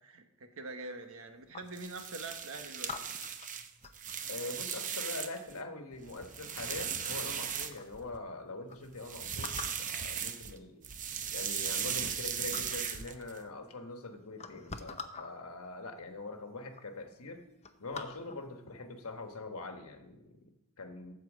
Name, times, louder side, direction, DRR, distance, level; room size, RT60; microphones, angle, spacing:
voice 1, 0.0-3.1, right 2 dB, 65° right, 6 dB, 1.2 m, -44 dB
sound 1, 0.9-1.9 2.8-4.3 5.9-6.4 7.0-7.1 7.3-7.9 8.4-8.5 8.7-8.8 9.4-9.9 10.9-11.0 11.4-12.2 12.5-12.9 13.8-13.9 14.3-15.3 16.2-16.3 16.6-16.9 17.2-18.5 19.0-19.2, left 5 dB, 30° left, 0.7 m, -46 dB
sound 2, 1.7-5.5 5.9-8.2 8.9-10.6 10.8-13.4, right 7 dB, 35° right, 0.7 m, -37 dB
voice 2, 4.3-10.9 11.3-17.4 17.8-21.1, left 2 dB, 70° left, 6 dB, 1.3 m, -43 dB
13.0 x 4.6 x 7.3 m, 0.88 s
head